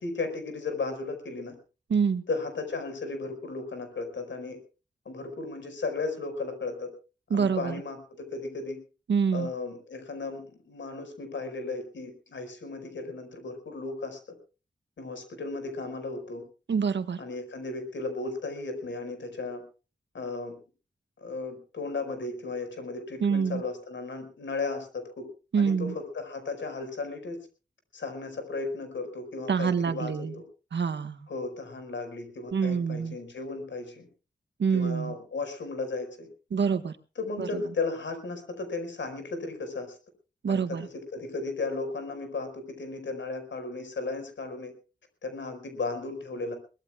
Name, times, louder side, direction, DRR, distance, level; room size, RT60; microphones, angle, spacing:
voice 1, 0.0-1.6 2.3-4.6 5.0-6.9 7.3-8.8 9.3-14.2 15.0-16.4 17.2-19.6 20.1-20.6 21.2-25.3 25.5-27.5 27.9-30.4 31.3-34.1 34.7-36.3 37.2-40.0 40.5-44.7 45.2-46.6, left 3 dB, 85° left, 7 dB, 5.1 m, -35 dB
voice 2, 1.9-2.2 7.3-7.8 9.1-9.5 16.7-17.2 23.2-23.6 25.5-25.9 29.5-30.3 30.7-31.3 32.5-33.2 34.6-35.1 36.5-37.0 37.4-37.6 40.4-40.9, right 6 dB, 75° right, 10 dB, 1.4 m, -26 dB
23.0 x 20.0 x 2.4 m, 0.35 s
wide cardioid pair, 125°, 19 cm